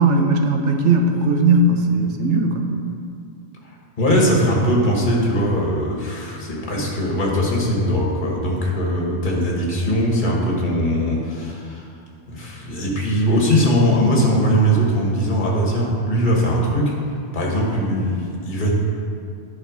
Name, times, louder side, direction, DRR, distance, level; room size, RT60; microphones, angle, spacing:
voice 1, 0.0-2.7, right 2 dB, 80° right, 4 dB, 1.1 m, -18 dB
voice 2, 4.0-11.8 12.3-16.9 17.3-18.7, equal, 45° left, -2 dB, 1.5 m, -20 dB
11.0 x 4.3 x 5.1 m, 2.4 s
omnidirectional pair, 1.2 m